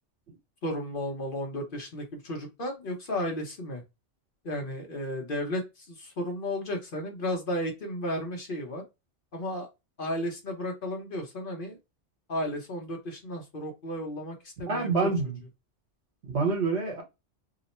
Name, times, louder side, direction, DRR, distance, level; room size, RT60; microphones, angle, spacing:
voice 1, 0.6-3.8 4.4-8.8 9.3-9.7 10.0-11.8 12.3-14.9, left 1 dB, 50° left, 0.9 m, -33 dB
voice 2, 14.7-15.4 16.2-17.0, right 4 dB, 65° right, 1.3 m, -27 dB
2.9 x 2.0 x 4.1 m
omnidirectional pair, 1.2 m